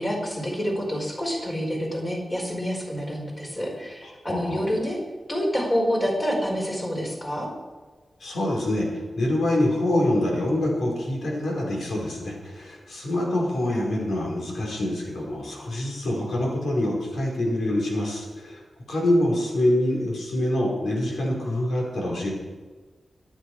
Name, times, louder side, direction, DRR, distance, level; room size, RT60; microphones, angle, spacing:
voice 1, 0.0-5.0 5.3-7.5, equal, 25° left, -2 dB, 4.9 m, -27 dB
voice 2, 4.0-4.6 8.2-18.6 18.9-22.3, left 1 dB, 90° left, -2 dB, 5.0 m, -25 dB
25.0 x 9.2 x 5.0 m, 1.3 s
wide cardioid pair, 140°, 0 cm